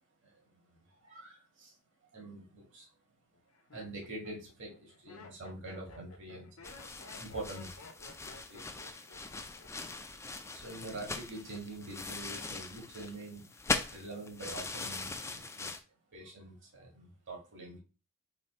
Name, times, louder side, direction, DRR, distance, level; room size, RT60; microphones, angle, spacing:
voice 1, 1.0-1.7 2.1-2.9 3.7-6.7 7.2-7.7 8.5-8.7 10.5-13.5 13.9-15.7 16.1-17.8, right 2 dB, 60° right, -1 dB, 1.8 m, -45 dB
Laughter, 2.3-2.7 3.3-10.0 10.2-10.7, left 3 dB, 70° left, 0.7 m, -54 dB
sound 1, 6.6-15.8, left 3 dB, 15° left, 0.4 m, -40 dB
4.1 x 2.6 x 4.3 m, 0.32 s
head